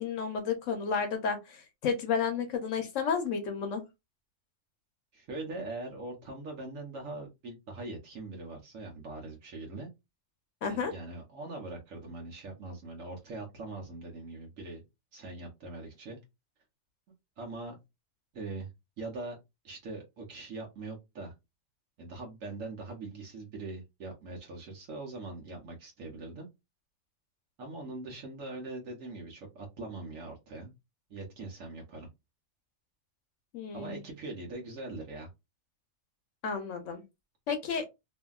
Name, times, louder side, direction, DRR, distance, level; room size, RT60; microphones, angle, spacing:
voice 1, 0.0-3.8 10.6-10.9 33.5-34.0 36.4-37.0 37.5-37.8, left 6 dB, 70° left, 0.9 m, -32 dB
voice 2, 5.1-9.9 10.7-14.8 15.1-16.2 17.4-17.8 18.3-18.7 19.0-19.4 19.6-21.3 22.0-26.5 27.6-30.7 31.1-32.1 33.7-35.3, right 2 dB, 75° right, 1.2 m, -42 dB
2.7 x 2.6 x 2.3 m
omnidirectional pair, 1.4 m